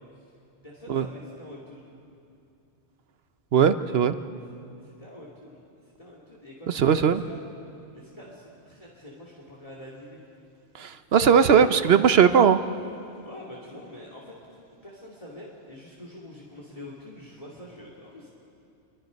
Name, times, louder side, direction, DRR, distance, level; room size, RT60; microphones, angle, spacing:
voice 1, 0.6-1.9 4.8-5.6 6.0-7.4 7.9-10.2 11.3-11.7 13.2-14.3 14.8-18.3, left 1 dB, 30° left, -4 dB, 2.9 m, -44 dB
voice 2, 3.5-4.2 6.7-7.2 10.8-12.6, right 7 dB, 65° right, 11 dB, 0.9 m, -19 dB
28.0 x 24.0 x 5.3 m, 2.6 s
omnidirectional pair, 1.2 m